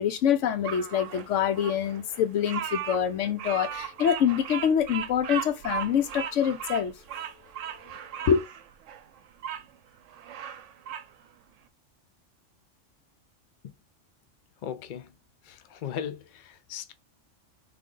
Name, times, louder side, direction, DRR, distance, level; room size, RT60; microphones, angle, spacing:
voice 1, 0.0-6.9 8.3-8.4, left 8 dB, 75° left, 0.9 m, -25 dB
Bird vocalization bird call bird song, 0.6-9.6 10.1-11.1, right 9 dB, 75° right, 0.9 m, -37 dB
voice 2, 14.6-15.1 15.5-16.9, left 9 dB, 55° left, 0.6 m, -37 dB
3.7 x 3.3 x 3.7 m
omnidirectional pair, 1.3 m